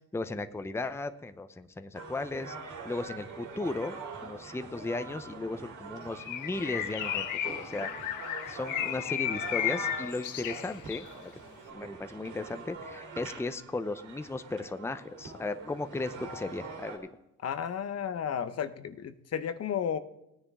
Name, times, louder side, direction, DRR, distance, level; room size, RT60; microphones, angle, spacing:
voice 1, 0.1-2.6 2.8-4.0 4.2-7.9 8.5-11.3 11.7-17.1, left 2 dB, 10° left, 10 dB, 0.7 m, -36 dB
sound 1, 1.9-17.0, right 4 dB, 85° right, 3.3 m, -44 dB
Bird, 6.2-11.1, left 12 dB, 85° left, 0.8 m, -34 dB
voice 2, 17.4-20.0, left 8 dB, 55° left, 12 dB, 1.0 m, -33 dB
17.0 x 10.0 x 3.6 m, 0.87 s
cardioid pair, 90°, 30 cm